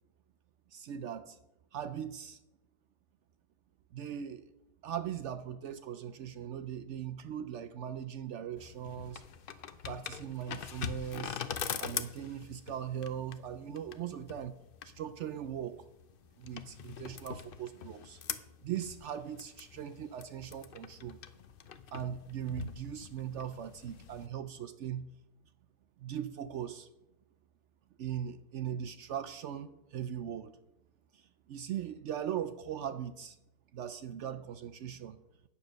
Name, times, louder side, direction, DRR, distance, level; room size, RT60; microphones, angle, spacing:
voice 1, 0.7-1.4 1.7-2.4 3.9-4.5 4.8-9.2 9.9-11.4 11.8-14.6 14.8-15.8 16.4-18.2 18.6-21.2 21.9-25.1 26.0-26.9 28.0-30.6 31.1-33.4 33.7-35.2, right 9 dB, 80° right, 10 dB, 0.6 m, -39 dB
sound 1, 8.6-24.3, left 8 dB, 80° left, 0.4 m, -43 dB
9.4 x 7.0 x 6.4 m, 0.92 s
omnidirectional pair, 1.8 m